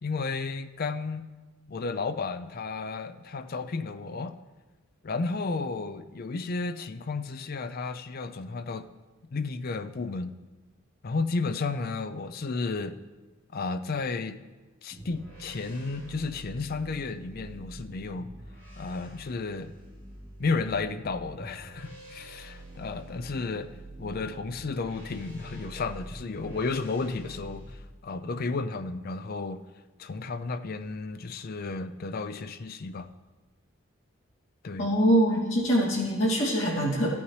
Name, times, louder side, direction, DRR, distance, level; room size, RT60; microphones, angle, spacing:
voice 1, 0.0-1.3 1.7-4.3 5.0-8.9 9.3-10.3 11.0-12.9 13.5-14.4 14.8-18.3 18.8-19.7 20.4-23.7 24.0-29.6 30.0-33.1 34.6-34.9, left 4 dB, 45° left, 11 dB, 0.5 m, -33 dB
sound 1, 14.9-27.7, right 1 dB, 10° left, 3.6 m, -46 dB
voice 2, 34.8-37.1, equal, 75° left, -3 dB, 2.5 m, -24 dB
14.0 x 8.6 x 3.2 m, 1.2 s
head